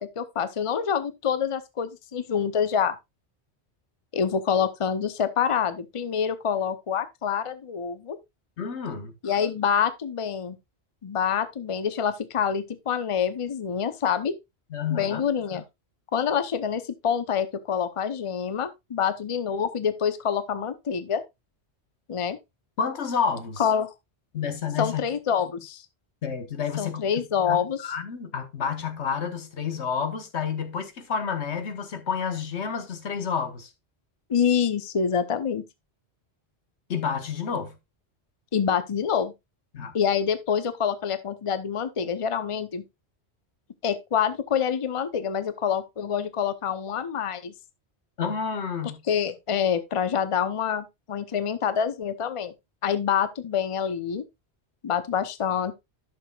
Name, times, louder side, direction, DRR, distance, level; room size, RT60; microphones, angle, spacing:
voice 1, 0.0-3.0 4.1-8.2 9.2-10.6 11.0-14.3 14.9-15.6 16.1-21.2 22.1-22.4 23.6-23.9 24.8-25.8 26.8-27.8 34.3-35.6 38.5-39.3 39.9-42.8 43.8-47.5 49.1-52.5 52.8-54.3 54.8-55.7, left 7 dB, 35° left, 0.7 m, -26 dB
voice 2, 8.6-9.1 14.7-15.2 22.8-23.7 24.3-25.0 26.2-27.1 27.4-33.7 36.9-37.8 39.7-39.9 48.2-49.0, left 6 dB, 85° left, 1.4 m, -30 dB
11.5 x 6.7 x 2.3 m
omnidirectional pair, 1.1 m